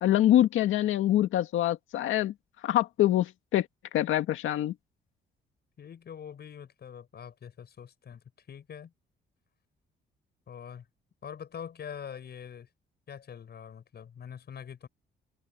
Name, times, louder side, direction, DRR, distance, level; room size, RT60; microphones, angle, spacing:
voice 1, 0.0-2.3 2.6-3.7 3.9-4.7, left 13 dB, 80° left, 2.1 m, -25 dB
voice 2, 5.8-8.9 10.5-10.9 11.2-12.7 13.1-14.9, left 8 dB, 55° left, 7.4 m, -44 dB
cardioid pair, 90°, 20 cm